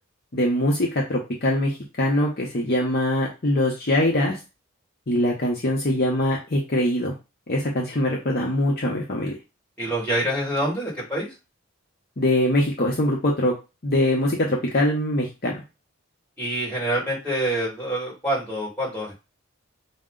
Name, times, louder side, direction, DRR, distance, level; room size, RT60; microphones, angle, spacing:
voice 1, 0.3-4.4 5.1-7.1 7.5-9.3 12.2-13.5 13.8-15.6, left 1 dB, 45° left, -2 dB, 0.8 m, -23 dB
voice 2, 9.8-11.3 16.4-19.2, right 1 dB, 10° left, -5 dB, 2.3 m, -26 dB
5.3 x 2.1 x 3.7 m, 0.28 s
head